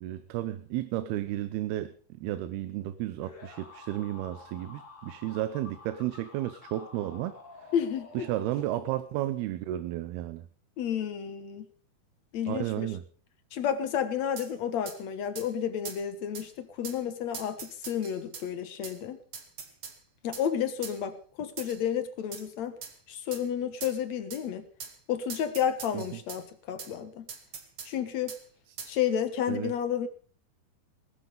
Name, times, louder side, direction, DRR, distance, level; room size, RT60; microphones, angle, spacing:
voice 1, 0.0-7.4 8.1-10.5 12.5-13.0 25.9-26.2 28.7-28.8 29.5-29.7, right 14 dB, 80° right, 2.8 m, -33 dB
sound 1, 3.2-9.2, left 3 dB, 45° left, 4.2 m, -49 dB
voice 2, 7.7-8.1 10.8-11.7 12.3-12.9 13.5-17.6 17.9-19.2 20.2-22.7 23.1-24.6 25.1-27.3 27.9-28.4 28.9-30.1, left 9 dB, 60° left, 2.0 m, -31 dB
sound 2, 14.4-14.5 14.9-15.0 15.4-15.5 15.9-16.0 16.3-16.5 16.8-17.0 17.3-18.5 18.8-19.0 19.3-20.0 20.3-20.5 20.8-21.0 21.6-21.8 22.3-22.5 22.8-22.9 23.3-23.4 23.8-24.0 24.3-24.4 24.8-25.0 25.3-26.4 26.8-26.9 27.3-27.9 28.3-28.4 28.8-28.9, right 6 dB, 40° right, 2.2 m, -42 dB
20.0 x 12.5 x 5.2 m
omnidirectional pair, 4.6 m